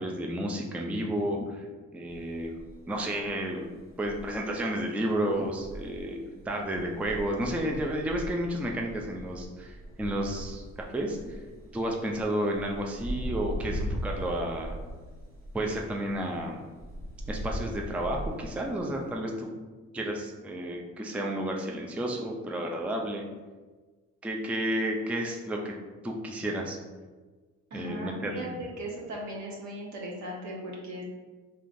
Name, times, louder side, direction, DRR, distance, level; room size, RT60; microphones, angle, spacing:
voice 1, 0.0-1.6 1.9-2.6 2.9-3.6 4.0-6.2 6.5-11.4 11.7-14.8 15.5-16.6 17.3-19.5 19.9-23.3 24.2-25.7 26.0-26.8 27.7-28.5, right 1 dB, 5° right, 1 dB, 0.4 m, -31 dB
sound 1, 2.1-19.1, equal, 45° right, 1.1 m, -40 dB
voice 2, 27.7-31.0, right 1 dB, 70° right, -2 dB, 1.1 m, -38 dB
3.7 x 3.2 x 2.5 m, 1.3 s
cardioid pair, 90°, 30 cm